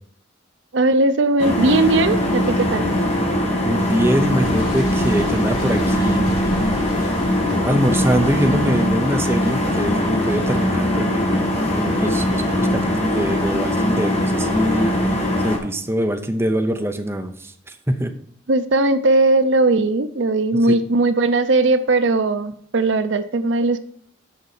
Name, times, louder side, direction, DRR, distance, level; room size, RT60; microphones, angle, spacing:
voice 1, 0.7-2.8 18.5-23.8, right 2 dB, 65° right, 11 dB, 0.6 m, -18 dB
sound 1, 1.4-15.6, left 1 dB, 35° left, 2.0 m, -21 dB
voice 2, 3.6-6.4 7.0-7.3 7.6-18.1 20.6-20.8, right 1 dB, 10° right, 5 dB, 0.7 m, -23 dB
Boom, 4.4-10.0, equal, 50° left, 4.2 m, -33 dB
6.6 x 5.4 x 7.1 m, 0.63 s
head